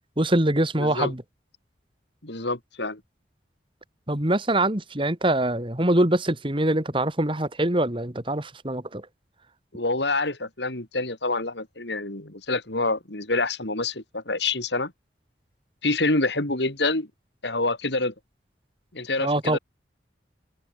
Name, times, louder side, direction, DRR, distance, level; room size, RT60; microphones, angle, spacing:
voice 1, 0.2-1.2 4.1-9.0 19.2-19.6, right 1 dB, 30° right, 2.5 m, -24 dB
voice 2, 0.8-1.1 2.2-3.0 9.7-14.9 15.8-17.1 17.4-18.1 18.9-19.6, left 2 dB, 70° left, 4.3 m, -27 dB
head